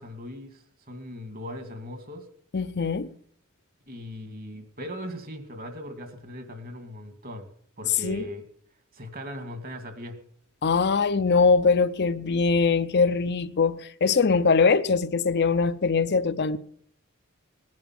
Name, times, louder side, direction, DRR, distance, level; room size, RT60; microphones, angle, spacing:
voice 1, 0.0-2.3 3.9-7.5 7.8-8.4 8.9-10.2, equal, 45° right, 2.3 m, -39 dB
voice 2, 2.5-3.1 8.0-8.3 10.6-16.6, left 4 dB, 55° left, 0.7 m, -22 dB
19.5 x 10.5 x 6.0 m
head